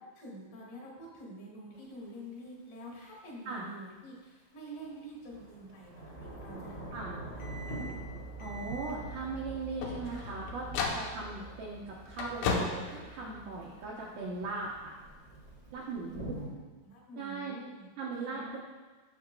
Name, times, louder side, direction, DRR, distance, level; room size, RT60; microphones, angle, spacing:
voice 1, 0.0-7.8 16.0-17.9 18.2-18.6, right 1 dB, 60° left, -3 dB, 4.0 m, -48 dB
Thunder / Rain, 1.7-1.8 4.8-16.5, right 1 dB, 35° left, 0.6 m, -46 dB
sound 1, 7.3-13.9, left 3 dB, 80° left, 3.1 m, -38 dB
voice 2, 8.4-14.9 15.7-16.4 17.2-17.6 18.0-18.6, right 3 dB, 75° right, -4 dB, 2.1 m, -39 dB
15.0 x 6.9 x 2.3 m, 1.3 s
omnidirectional pair, 5.4 m